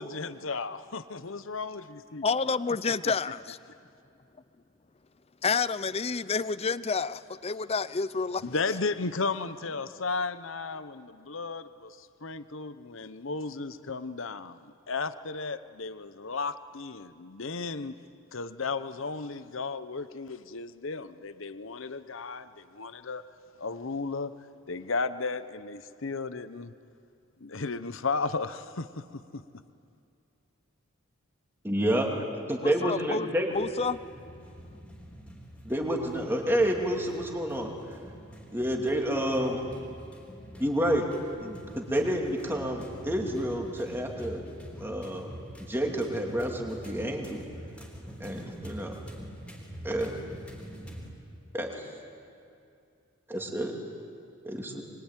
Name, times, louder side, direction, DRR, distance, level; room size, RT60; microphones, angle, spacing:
voice 1, 0.0-2.3 3.0-3.1 8.4-18.0 18.3-23.2 23.6-24.3 24.7-26.7 27.4-29.4, left 4 dB, 65° left, 0.9 m, -34 dB
voice 2, 2.2-3.6 5.4-8.4 32.6-33.3 33.5-34.0, left 4 dB, 30° left, 0.5 m, -29 dB
voice 3, 31.6-32.1 32.5-33.5 35.6-37.7 38.5-39.7 40.6-41.1 41.4-44.5 44.8-45.3 45.6-47.4 48.2-48.9 49.8-50.1 51.5-51.9 53.3-53.7 54.4-54.8, equal, 10° right, 2.7 m, -29 dB
sound 1, 33.5-51.1, equal, 5° left, 3.6 m, -45 dB
24.0 x 22.5 x 9.1 m
head